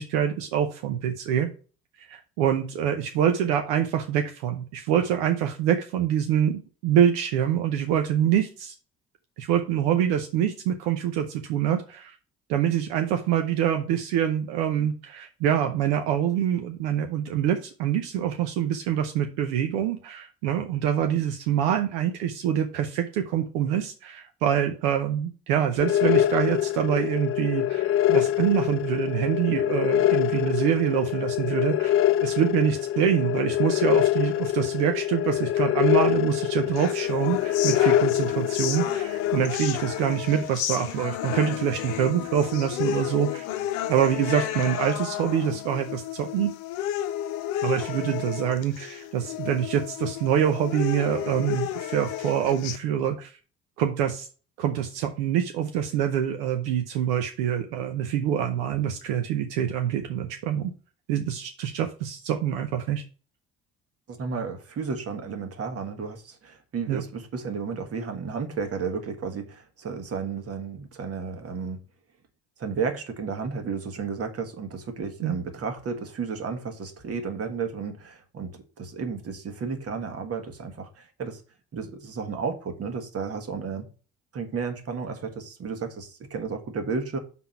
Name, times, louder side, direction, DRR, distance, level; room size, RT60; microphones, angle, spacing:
voice 1, 0.0-1.5 2.0-8.7 9.4-12.2 12.5-43.5 43.9-46.5 47.6-53.3 53.8-54.3 54.6-60.7 61.1-63.0 66.9-67.0 75.2-75.3, right 9 dB, 80° right, 0.7 m, -25 dB
Oscillating electronic machine, 25.8-39.4, left 12 dB, 45° left, 0.4 m, -24 dB
sound 1, 36.8-52.8, left 12 dB, 75° left, 0.7 m, -32 dB
voice 2, 64.1-71.8 72.6-81.4 81.7-83.9 84.3-87.2, right 5 dB, 50° right, 1.6 m, -33 dB
5.9 x 3.8 x 5.7 m
hypercardioid pair, 55°, 31 cm